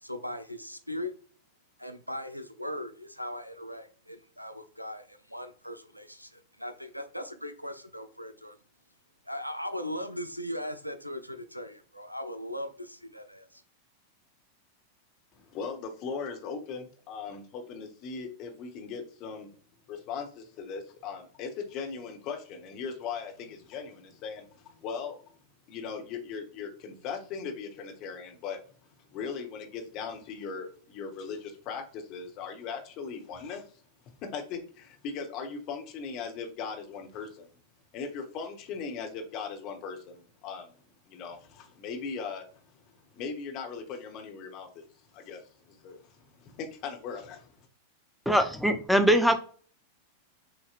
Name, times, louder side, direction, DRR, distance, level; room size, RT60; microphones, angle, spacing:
voice 1, 0.0-1.1 1.8-8.6 9.3-13.6, left 1 dB, 90° right, 10 dB, 0.5 m, -39 dB
voice 2, 15.3-19.5 19.9-25.2 25.7-28.6 29.1-33.8 34.2-37.5 37.9-40.7 41.1-42.4 42.8-42.9 43.1-44.8 45.1-47.7, left 5 dB, 40° left, 3 dB, 1.1 m, -39 dB
voice 3, 48.3-49.4, equal, ahead, 8 dB, 0.6 m, -22 dB
6.6 x 2.8 x 2.5 m, 0.43 s
figure-of-eight pair, 90°, 0 cm